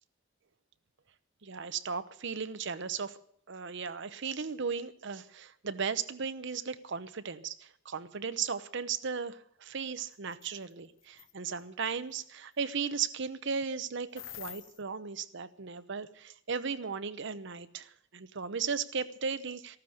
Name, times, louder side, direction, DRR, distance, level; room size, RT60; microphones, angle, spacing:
voice 1, 1.4-3.2 3.5-19.8, right 6 dB, 65° right, 13 dB, 0.8 m, -36 dB
sound 1, 10.3-10.5 11.0-11.3 14.2-14.8, left 12 dB, 80° left, 1.2 m, -45 dB
15.0 x 12.5 x 6.5 m, 0.65 s
head